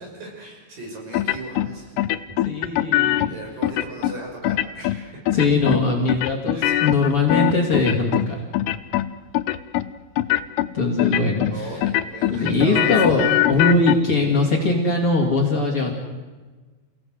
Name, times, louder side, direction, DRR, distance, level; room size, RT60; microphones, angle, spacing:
voice 1, 0.0-2.2 3.3-5.2 6.5-6.9 11.5-13.9, right 2 dB, 55° right, 0 dB, 7.3 m, -37 dB
sound 1, 1.1-1.7 2.0-3.3 3.6-4.1 4.4-5.0 5.3-5.8 6.1-8.3 8.5-9.1 9.3-9.9 10.2-10.7 11.0-11.5 11.8-14.0, left 14 dB, 85° left, 2.8 m, -21 dB
voice 2, 2.4-3.3 5.3-8.4 10.7-11.8 12.3-15.9, left 3 dB, 35° left, -2 dB, 3.2 m, -21 dB
28.5 x 17.0 x 8.0 m, 1.3 s
omnidirectional pair, 4.6 m